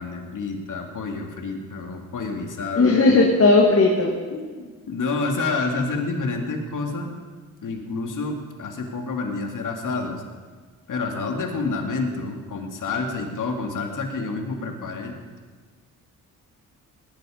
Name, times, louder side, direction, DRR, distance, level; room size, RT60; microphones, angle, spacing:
voice 1, 0.0-3.0 4.3-7.2 7.6-10.2 10.9-15.1, left 3 dB, 60° left, 2 dB, 2.5 m, -28 dB
voice 2, 2.8-4.1, left 3 dB, 40° left, -1 dB, 2.1 m, -16 dB
19.0 x 10.5 x 5.1 m, 1.5 s
cardioid pair, 75°, 36 cm